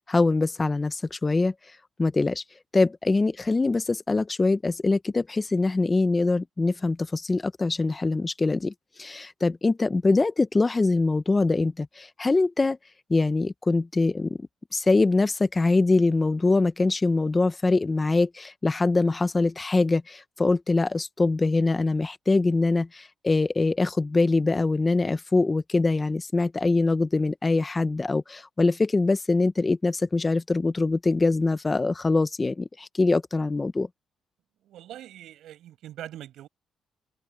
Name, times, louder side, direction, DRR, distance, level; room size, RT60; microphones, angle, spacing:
voice 1, 0.1-1.5 2.0-2.4 2.7-8.7 9.0-12.8 13.1-14.5 14.7-33.9, left 3 dB, 25° left, 1.0 m, -23 dB
voice 2, 34.6-36.5, right 12 dB, 80° right, 6.8 m, -42 dB
cardioid pair, 90°, 0 cm